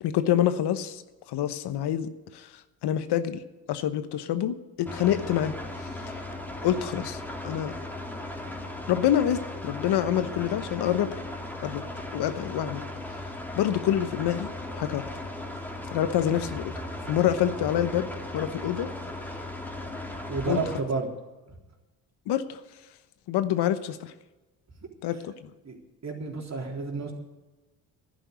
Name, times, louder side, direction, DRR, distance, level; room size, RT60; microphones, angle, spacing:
voice 1, 0.0-1.0 1.3-2.5 2.8-3.4 3.7-5.5 6.6-7.7 8.9-11.2 11.6-11.8 12.1-12.8 13.6-15.1 15.9-16.7 17.1-18.1 18.3-18.9 20.5-20.6 22.3-22.6 23.3-24.1 25.0-25.3, left 11 dB, 70° left, 12 dB, 1.1 m, -26 dB
sound 1, 4.9-20.8, left 2 dB, 5° left, 2.6 m, -37 dB
voice 2, 20.2-21.1 21.5-21.6 25.6-25.8 26.0-27.1, right 4 dB, 40° right, 1 dB, 3.8 m, -31 dB
11.5 x 10.0 x 8.2 m, 1.1 s
supercardioid pair, 60°, 42 cm